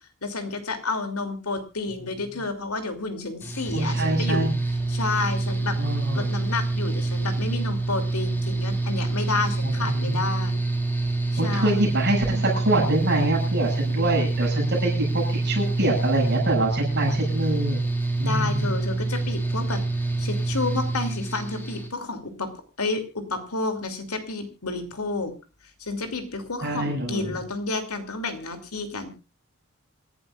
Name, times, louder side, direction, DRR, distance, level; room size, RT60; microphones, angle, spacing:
voice 1, 0.2-4.5 4.9-5.8 6.1-10.6 11.3-11.9 18.2-19.8 20.2-22.5 22.8-25.3 25.8-29.1, left 3 dB, 90° left, 7 dB, 2.8 m, -30 dB
Mechanical fan, 3.4-21.9, right 2 dB, 10° left, 2.3 m, -26 dB
voice 2, 3.7-4.5 5.8-6.3 9.6-10.2 11.4-17.8 18.2-18.7 26.6-27.3, right 1 dB, 50° right, -1 dB, 6.9 m, -25 dB
27.5 x 11.5 x 2.4 m, 0.31 s
head